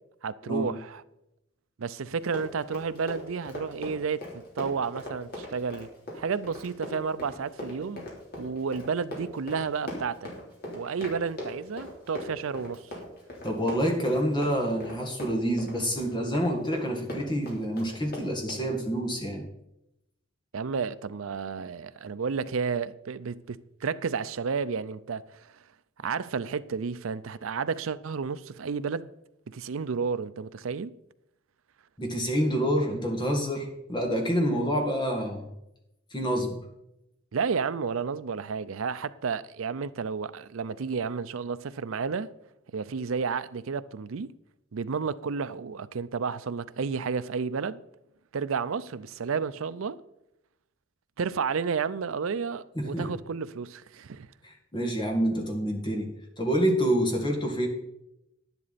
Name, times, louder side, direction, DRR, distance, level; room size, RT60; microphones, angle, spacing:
voice 1, 0.2-1.0 1.8-4.2 4.6-5.9 6.1-8.1 8.4-10.3 10.7-12.8 20.5-25.5 26.0-29.1 29.5-30.9 37.3-42.3 42.7-44.3 44.7-47.8 48.3-50.0 51.2-54.3, right 5 dB, 75° right, 0.5 m, -31 dB
Run, 2.2-18.7, left 1 dB, 50° left, 3.5 m, -39 dB
voice 2, 13.4-19.5 32.0-35.5 36.1-36.6 52.8-53.1 54.4-56.1 56.4-57.7, equal, 20° left, 1.9 m, -27 dB
10.5 x 10.5 x 4.1 m
head